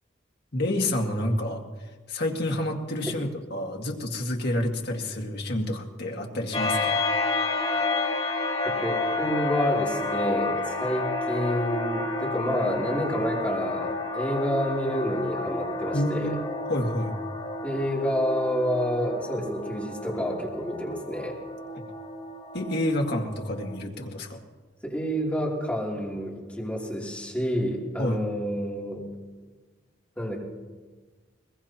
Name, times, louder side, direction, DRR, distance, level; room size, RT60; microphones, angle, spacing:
voice 1, 0.5-1.6 2.1-7.0 15.9-16.4 16.7-17.1 22.5-24.4 28.0-28.2, left 1 dB, 60° left, 1 dB, 2.0 m, -28 dB
sound 1, 6.5-23.8, left 3 dB, 35° left, 3.8 m, -30 dB
voice 2, 8.6-16.4 17.6-21.4 24.8-29.0 30.2-30.4, equal, 10° left, -4 dB, 3.1 m, -29 dB
22.0 x 21.5 x 3.0 m, 1.4 s
head